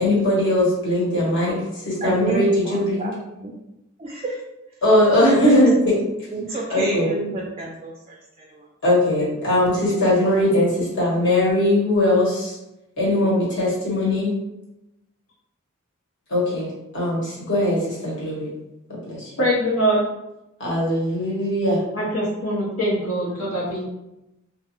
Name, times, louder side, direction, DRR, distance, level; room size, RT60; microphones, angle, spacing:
voice 1, 0.0-3.1 4.8-5.9 6.5-7.1 8.8-12.6 13.0-14.3 16.3-18.5 18.9-19.3 20.6-21.8, left 1 dB, 60° left, -7 dB, 1.2 m, -20 dB
voice 2, 2.0-3.5 4.0-4.4 5.3-5.6 5.8-6.0 6.3-8.7, right 2 dB, 30° right, -1 dB, 0.3 m, -29 dB
voice 3, 19.4-20.0 21.9-23.8, equal, 75° left, -4 dB, 0.9 m, -23 dB
2.5 x 2.3 x 2.9 m, 0.93 s
head